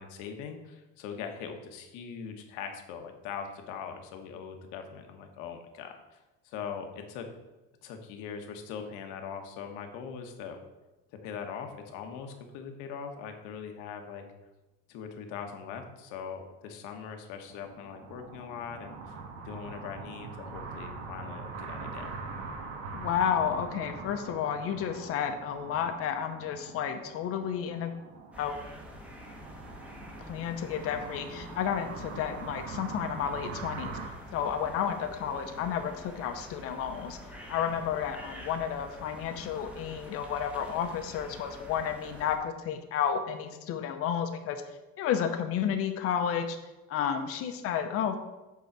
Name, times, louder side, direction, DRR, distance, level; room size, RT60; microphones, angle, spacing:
voice 1, 0.0-7.3 7.8-10.6 11.2-14.2 14.9-19.2 19.4-22.1, left 6 dB, 80° left, 5 dB, 1.3 m, -41 dB
sound 1, 17.4-34.1, right 4 dB, 85° right, 1.5 m, -43 dB
voice 2, 22.9-27.9 28.4-28.6 30.3-34.0 34.3-37.2 37.5-44.6 45.0-46.6 46.9-48.2, left 8 dB, 50° left, 7 dB, 0.8 m, -31 dB
sound 2, 28.3-42.4, left 1 dB, 5° right, 0.9 m, -47 dB
8.4 x 3.9 x 5.9 m, 1.1 s
cardioid pair, 170°, 30 cm